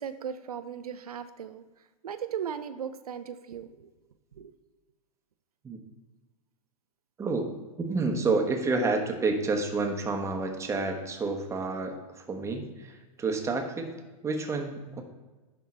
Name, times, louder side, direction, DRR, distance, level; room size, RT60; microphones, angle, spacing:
voice 1, 0.0-3.9 4.3-4.5, right 8 dB, 85° right, 11 dB, 0.5 m, -37 dB
voice 2, 7.8-11.9 12.3-13.9 14.2-15.0, right 3 dB, 15° right, 3 dB, 1.1 m, -29 dB
10.5 x 3.6 x 4.3 m, 1.2 s
hypercardioid pair, 105°, 19 cm